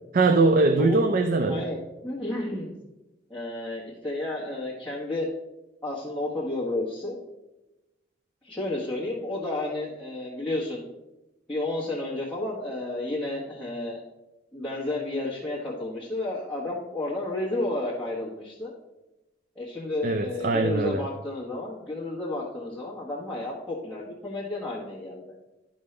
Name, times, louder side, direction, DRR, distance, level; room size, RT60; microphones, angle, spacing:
voice 1, 0.1-1.6 20.0-21.1, right 3 dB, 50° right, 6 dB, 0.5 m, -22 dB
voice 2, 1.5-2.7 3.3-5.3 5.8-7.2 8.4-10.8 11.5-14.0 14.5-18.7 19.5-25.2, left 2 dB, 5° left, -9 dB, 1.3 m, -31 dB
11.5 x 5.4 x 3.3 m, 1.0 s
head